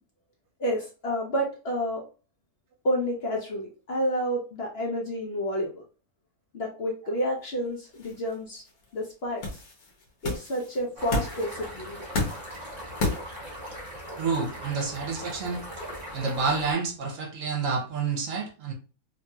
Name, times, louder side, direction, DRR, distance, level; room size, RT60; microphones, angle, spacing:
voice 1, 0.6-2.0 2.8-5.8 6.5-8.6 8.9-9.6 10.2-12.0, equal, 55° left, 0.8 m, -30 dB
sound 1, 7.7-13.9, left 2 dB, 80° left, 1.3 m, -33 dB
sound 2, 11.0-16.7, equal, 35° right, 1.3 m, -40 dB
voice 2, 14.2-15.6 16.1-18.7, right 4 dB, 65° right, 1.0 m, -29 dB
3.0 x 2.7 x 2.3 m
omnidirectional pair, 1.5 m